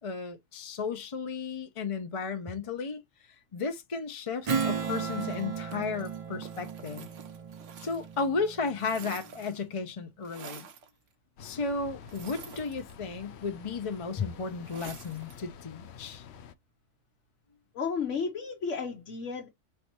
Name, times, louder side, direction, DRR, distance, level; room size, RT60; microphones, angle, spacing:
voice 1, 0.0-3.0 3.5-7.1 7.8-10.7 11.4-16.2, left 4 dB, 35° left, 0.6 m, -34 dB
Strum, 4.5-9.4, right 6 dB, 40° right, 0.5 m, -35 dB
sound 1, 4.5-8.3 8.5-9.7 10.2-10.9 12.0-13.2 14.6-15.4, right 7 dB, 85° right, 1.1 m, -49 dB
sound 2, 11.4-16.5, left 7 dB, 70° left, 0.8 m, -48 dB
voice 2, 17.7-19.5, left 5 dB, 85° left, 1.3 m, -33 dB
5.2 x 3.4 x 2.9 m
omnidirectional pair, 1.2 m